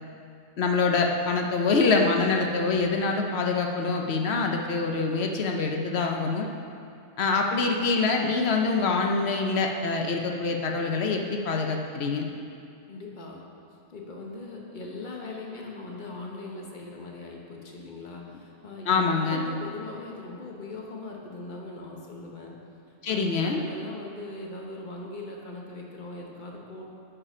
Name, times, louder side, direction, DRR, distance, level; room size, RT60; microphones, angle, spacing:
voice 1, 0.6-6.5 7.2-12.3 18.8-19.5 23.0-23.6, left 4 dB, 55° left, 2 dB, 0.8 m, -25 dB
voice 2, 12.9-13.4 13.9-22.5 23.1-26.8, left 2 dB, 35° left, -1 dB, 1.1 m, -40 dB
9.6 x 5.0 x 5.4 m, 2.5 s
omnidirectional pair, 1.5 m